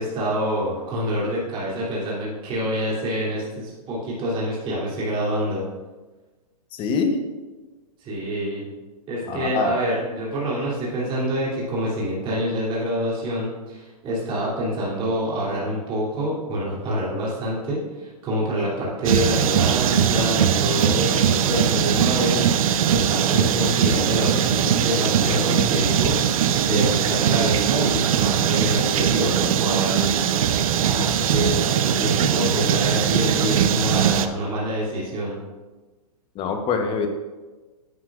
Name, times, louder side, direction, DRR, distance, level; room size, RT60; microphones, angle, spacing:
voice 1, 0.0-5.7 8.0-8.7 9.1-30.3 30.8-35.4, equal, 25° right, -7 dB, 2.9 m, -26 dB
voice 2, 6.7-7.2 9.3-9.8 36.3-37.1, left 5 dB, 25° left, 5 dB, 1.0 m, -24 dB
sound 1, 19.0-34.3, right 9 dB, 60° right, 0.7 m, -21 dB
10.0 x 9.5 x 2.5 m, 1.3 s
hypercardioid pair, 135°, 20 cm